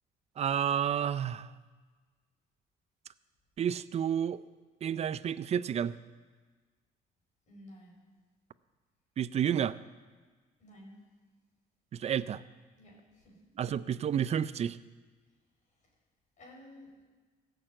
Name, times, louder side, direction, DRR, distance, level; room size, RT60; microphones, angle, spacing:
voice 1, 0.4-1.5 3.6-4.4 4.8-5.9 9.2-9.8 11.9-12.4 13.6-14.8, right 9 dB, 40° right, 16 dB, 0.5 m, -30 dB
voice 2, 7.5-8.0 10.6-11.0 12.8-13.4 15.8-15.9 16.4-17.0, left 1 dB, 45° left, -1 dB, 5.3 m, -53 dB
16.0 x 6.7 x 7.8 m, 1.4 s
cardioid pair, 110°, 17 cm